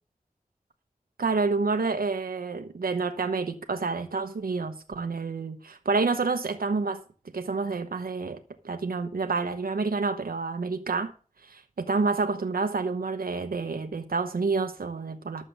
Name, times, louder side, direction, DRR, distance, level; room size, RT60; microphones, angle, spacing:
voice 1, 1.2-7.0 7.3-8.4 8.6-11.1 11.5-15.5, right 4 dB, 90° right, 1.0 m, -28 dB
12.0 x 7.5 x 6.6 m
wide cardioid pair, 55°, 15 cm